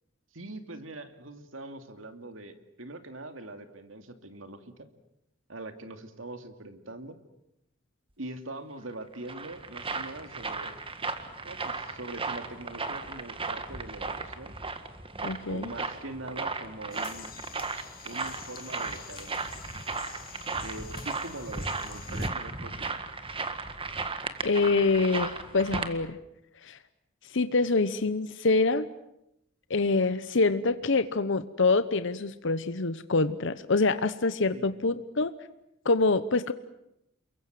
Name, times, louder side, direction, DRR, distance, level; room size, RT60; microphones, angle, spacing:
voice 1, 0.3-4.9 5.5-7.2 8.2-10.8 11.4-14.5 15.5-17.3 18.0-19.5 20.6-23.0 34.5-34.7, right 2 dB, 75° right, 8 dB, 2.5 m, -42 dB
sound 1, 8.9-25.9, right 3 dB, 30° right, 1.8 m, -36 dB
voice 2, 15.2-15.7 24.4-26.2 26.6-26.8 27.3-28.9 29.7-35.3 35.8-36.5, left 3 dB, 70° left, 13 dB, 1.0 m, -25 dB
sound 2, 16.9-22.3, left 9 dB, 50° left, 2.2 m, -48 dB
29.0 x 23.0 x 7.7 m, 0.84 s
head